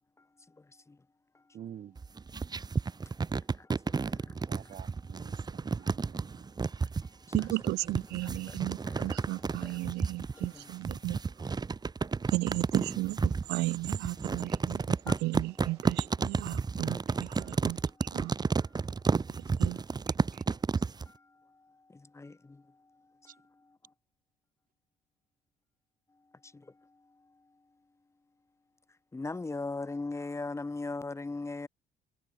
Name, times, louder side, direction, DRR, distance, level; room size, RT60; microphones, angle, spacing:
voice 1, 0.2-1.0 1.3-1.6 2.5-5.3 5.8-6.4 6.8-11.0 13.3-14.6 15.1-16.2 16.8-16.9 17.4-23.9 26.1-27.6 29.1-31.7, left 3 dB, 15° left, 2.9 m, -45 dB
voice 2, 1.5-2.0 4.5-6.4 7.8-7.9 14.4-14.9 16.0-16.1 17.0-17.6 20.3-20.4 23.3-23.4, right 10 dB, 55° right, 3.1 m, -49 dB
sound 1, 2.0-21.1, right 4 dB, 25° right, 1.7 m, -31 dB
voice 3, 7.3-11.2 12.3-13.2 13.5-14.8 15.2-17.0 17.6-17.8 18.1-18.3 19.6-19.8, right 20 dB, 85° right, 0.6 m, -34 dB
cardioid pair, 110°, 17 cm